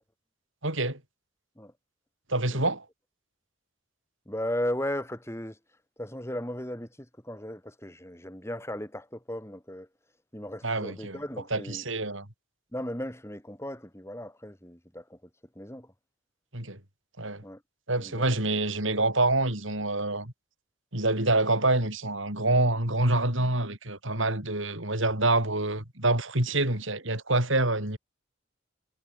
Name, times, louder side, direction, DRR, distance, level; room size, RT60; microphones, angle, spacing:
voice 1, 0.6-1.0 2.3-2.9 10.6-11.2 11.5-12.3 16.5-16.8 17.2-17.4 17.9-20.3 20.9-28.0, right 2 dB, 70° right, 7.2 m, -26 dB
voice 2, 4.3-5.6 6.0-9.9 10.3-11.8 12.7-15.2 15.6-15.9 17.4-17.6 18.0-18.3, left 1 dB, 15° left, 3.7 m, -36 dB
head